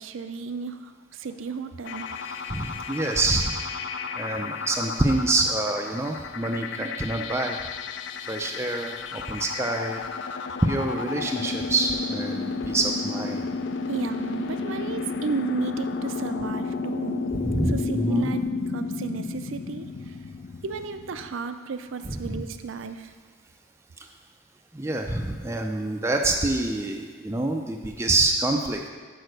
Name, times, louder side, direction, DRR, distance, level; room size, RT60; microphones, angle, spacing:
voice 1, 0.0-2.1 13.9-17.2 17.7-18.4 18.7-20.2 20.6-23.1, right 5 dB, 75° right, 9 dB, 0.5 m, -33 dB
sound 1, 1.8-21.3, left 4 dB, 60° left, 0.4 m, -32 dB
voice 2, 2.3-3.5 4.2-7.6 8.3-10.0 10.6-13.4 17.3-18.3 22.1-22.4 24.7-28.9, right 2 dB, 15° right, 2 dB, 0.4 m, -26 dB
6.2 x 4.9 x 6.5 m, 1.5 s
head